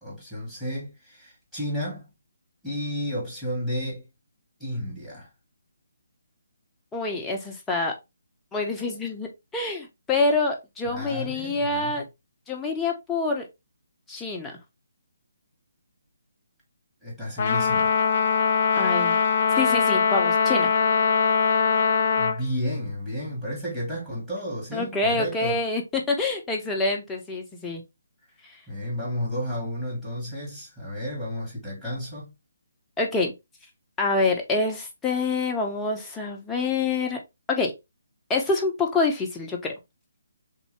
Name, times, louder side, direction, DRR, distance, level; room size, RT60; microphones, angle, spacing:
voice 1, 0.0-2.1 2.6-4.0 4.6-5.3 10.9-12.0 17.0-18.0 22.2-25.6 28.7-32.3, equal, 5° right, 1.6 m, -32 dB
voice 2, 6.9-7.9 8.5-12.0 12.5-13.5 14.1-14.5 18.8-19.2 19.6-20.7 24.7-27.8 33.0-33.3 34.0-37.2 37.5-37.7 38.3-39.7, left 3 dB, 10° left, 0.8 m, -26 dB
Trumpet, 17.4-22.4, left 6 dB, 45° left, 0.4 m, -21 dB
3.4 x 2.7 x 3.2 m
figure-of-eight pair, 145°, 0 cm